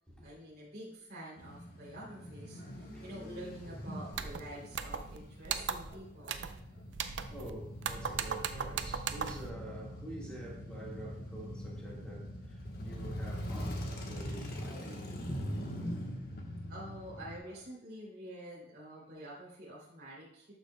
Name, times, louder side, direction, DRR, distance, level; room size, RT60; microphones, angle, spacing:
voice 1, 0.1-6.8 15.9-16.4 16.7-20.5, right 1 dB, 55° right, 2.9 m, -48 dB
Male speech man speaking / Motorcycle / Idling, 1.4-17.4, equal, 55° left, 1.2 m, -43 dB
sound 1, 4.1-4.4 4.7-5.2 5.4-5.9 6.3-6.6 6.9-7.5 7.8-9.5, right 7 dB, 70° right, 0.5 m, -37 dB
voice 2, 7.3-15.4 15.7-15.8, right 1 dB, 5° left, 1.7 m, -47 dB
11.5 x 5.8 x 2.2 m
head